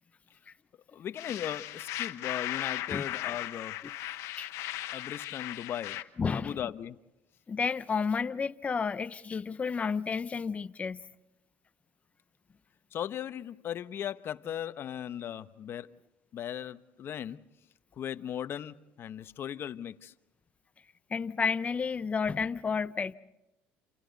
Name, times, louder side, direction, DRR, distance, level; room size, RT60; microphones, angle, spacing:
voice 1, 0.9-3.8 4.9-6.0 6.3-7.0 12.9-16.0 16.3-17.5 18.0-20.1, left 10 dB, 50° left, 0.9 m, -38 dB
sound 1, 1.2-6.0, left 14 dB, 70° left, 1.1 m, -37 dB
voice 2, 6.2-6.6 7.5-11.0 21.1-23.1, left 5 dB, 25° left, 0.8 m, -31 dB
29.0 x 28.0 x 4.0 m
cardioid pair, 110°, 5 cm